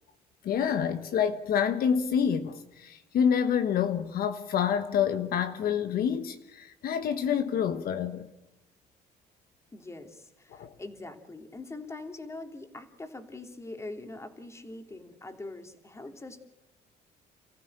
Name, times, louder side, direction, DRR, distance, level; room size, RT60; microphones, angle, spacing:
voice 1, 0.4-8.3 10.5-10.7, left 8 dB, 60° left, 1.4 m, -27 dB
voice 2, 9.7-16.4, left 2 dB, 15° left, 3.1 m, -43 dB
29.0 x 15.0 x 8.8 m
cardioid pair, 110°, 17 cm